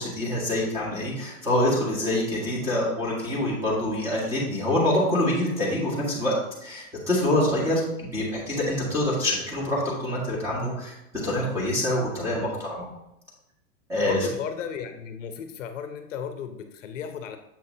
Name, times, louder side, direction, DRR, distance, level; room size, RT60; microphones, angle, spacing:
voice 1, 0.0-6.3 6.6-10.9 11.2-12.9 13.9-14.3, left 1 dB, 5° right, -6 dB, 1.5 m, -26 dB
voice 2, 14.0-17.4, left 7 dB, 60° left, 7 dB, 0.8 m, -35 dB
7.3 x 5.7 x 2.7 m, 0.90 s
supercardioid pair, 165°, 43 cm